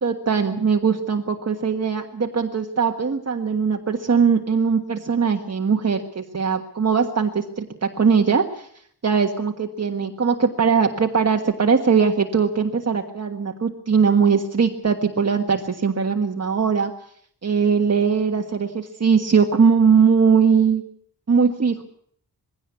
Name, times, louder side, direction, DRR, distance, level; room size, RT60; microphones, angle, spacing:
voice 1, 0.0-8.7 9.0-16.9 17.4-20.8 21.3-21.8, right 6 dB, 40° right, 2 dB, 1.6 m, -20 dB
21.5 x 17.0 x 8.3 m, 0.63 s
wide cardioid pair, 150°, 39 cm